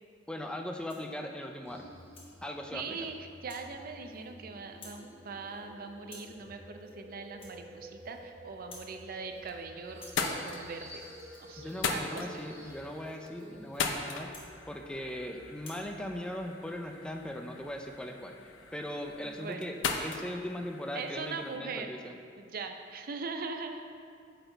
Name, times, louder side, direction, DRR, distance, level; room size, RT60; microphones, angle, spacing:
voice 1, 0.3-1.8 2.4-3.0 11.6-14.3 14.7-22.1, left 1 dB, 5° left, 3 dB, 0.4 m, -39 dB
Rattle (instrument), 0.7-1.1 1.6-2.3 2.8-3.0 3.5-3.7 4.0-4.4 4.7-5.1 5.3-5.7 6.0-6.4 6.7-7.0 7.3-8.3 8.5-9.0 9.3-9.6 9.9-15.2 15.5-15.9, left 2 dB, 30° left, 1.1 m, -56 dB
sound 1, 1.7-18.8, equal, 15° right, 1.0 m, -52 dB
voice 2, 2.7-11.0 11.4-12.4 19.2-19.7 20.9-21.9 22.4-23.8, right 4 dB, 50° right, 5 dB, 0.5 m, -41 dB
sound 2, 9.1-9.6 9.9-21.6, left 5 dB, 80° left, 0.5 m, -39 dB
7.8 x 4.1 x 4.0 m, 2.3 s
head